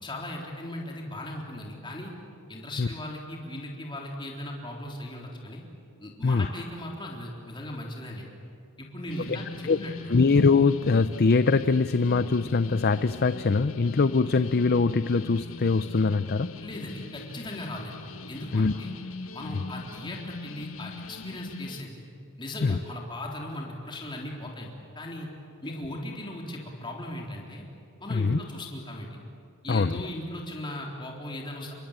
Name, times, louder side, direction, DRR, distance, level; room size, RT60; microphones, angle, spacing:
voice 1, 0.0-2.1 2.5-5.6 6.0-8.3 8.8-10.3 16.6-18.0 18.3-18.9 19.3-22.0 22.4-25.3 25.6-27.6 28.0-29.2 29.6-31.7, left 1 dB, 25° left, -1 dB, 3.7 m, -38 dB
sound 1, 9.1-21.8, left 3 dB, 75° left, 1.3 m, -41 dB
voice 2, 10.1-16.5 18.5-18.7 22.6-22.8 28.1-28.4 29.7-30.0, left 4 dB, 50° left, 12 dB, 0.6 m, -22 dB
28.0 x 23.5 x 8.9 m, 2.5 s
head